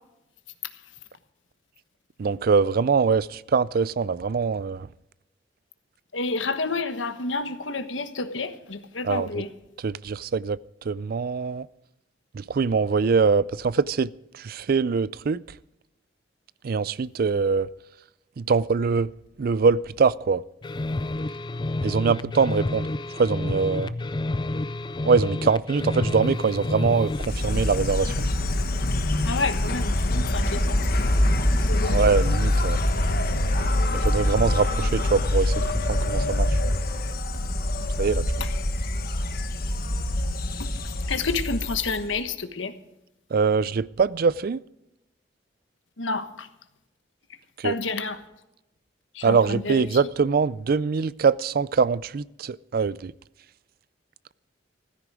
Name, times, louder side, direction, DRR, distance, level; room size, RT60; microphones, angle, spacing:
voice 1, 2.2-4.9 9.0-9.3 9.8-10.6 10.9-11.7 12.3-15.4 16.6-17.7 18.4-19.1 19.4-20.4 21.8-22.9 23.1-23.9 25.1-28.1 31.9-32.8 33.9-35.5 35.9-36.6 38.0-38.3 43.3-44.6 47.6-47.7 49.2-53.1, right 5 dB, 50° right, 0.4 m, -23 dB
voice 2, 6.1-9.5 29.2-31.1 31.7-32.1 38.4-38.5 40.6-40.7 41.1-42.7 46.0-46.5 47.6-48.2 49.1-50.0, left 3 dB, 85° left, 1.3 m, -29 dB
sound 1, 20.6-27.4, left 2 dB, 25° left, 0.4 m, -29 dB
Insect, 27.1-42.2, left 1 dB, 50° left, 1.2 m, -24 dB
15.0 x 13.5 x 4.8 m
head